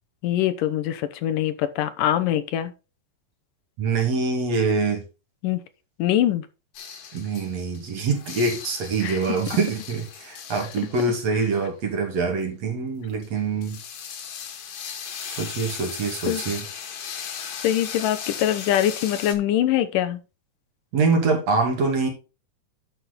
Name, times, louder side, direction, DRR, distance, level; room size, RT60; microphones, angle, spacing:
voice 1, 0.2-2.7 5.4-5.6 6.0-6.5 9.0-9.2 16.3-16.4 17.6-20.2, left 11 dB, 85° left, 2.5 m, -23 dB
voice 2, 3.8-5.1 7.1-13.8 15.3-16.7 20.9-22.1, right 4 dB, 55° right, 3.5 m, -24 dB
sound 1, 6.7-7.8 8.1-12.1 13.2-19.3, left 7 dB, 60° left, 2.6 m, -37 dB
11.0 x 5.9 x 4.1 m
omnidirectional pair, 3.7 m